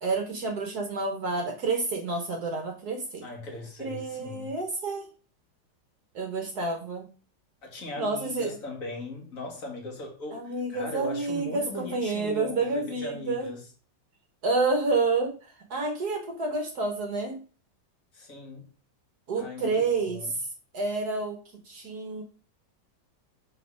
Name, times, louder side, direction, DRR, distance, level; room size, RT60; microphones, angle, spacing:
voice 1, 0.0-3.2 3.8-5.1 6.1-7.1 8.0-8.5 10.3-13.5 14.4-17.4 19.3-20.2 20.7-21.4 21.6-22.2, right 3 dB, 60° right, 1.6 m, -29 dB
voice 2, 3.2-4.5 7.6-13.7 18.1-18.7 19.4-20.3, left 2 dB, 45° left, 2.3 m, -39 dB
5.8 x 5.3 x 5.1 m
omnidirectional pair, 2.0 m